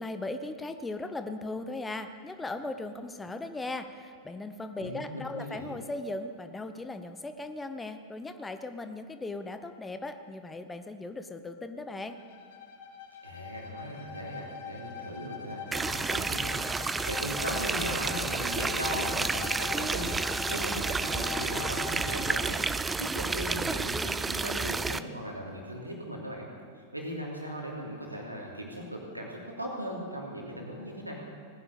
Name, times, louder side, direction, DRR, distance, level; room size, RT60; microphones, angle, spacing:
voice 1, 0.0-12.2, left 2 dB, 10° left, 8 dB, 0.9 m, -38 dB
voice 2, 4.8-5.7 13.2-22.6 23.0-26.5 26.7-31.2, equal, 85° right, -1 dB, 2.9 m, -38 dB
Bowed string instrument, 12.1-22.5, left 8 dB, 55° left, 1.2 m, -42 dB
sound 1, 15.7-25.0, right 4 dB, 10° right, 0.4 m, -31 dB
18.5 x 10.0 x 6.9 m, 2.2 s
figure-of-eight pair, 90°, 0 cm